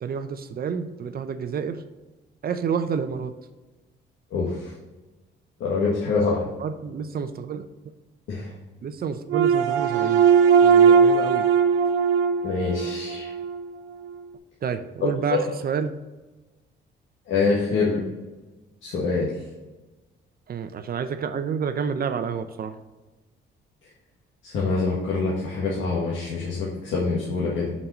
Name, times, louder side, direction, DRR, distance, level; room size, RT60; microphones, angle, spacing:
voice 1, 0.0-1.8 2.4-3.3 6.6-7.6 8.8-10.2 10.6-11.5 14.6-15.9 20.5-22.7, right 6 dB, 50° right, 9 dB, 0.6 m, -29 dB
voice 2, 5.6-6.4 8.3-8.5 12.4-13.3 15.3-15.4 17.3-18.0 18.8-19.3 24.5-27.7, left 4 dB, 75° left, -6 dB, 1.6 m, -25 dB
sound 1, 9.3-13.6, right 6 dB, 85° right, 0.8 m, -19 dB
5.6 x 5.4 x 4.2 m, 1.1 s
cardioid pair, 90°, 20 cm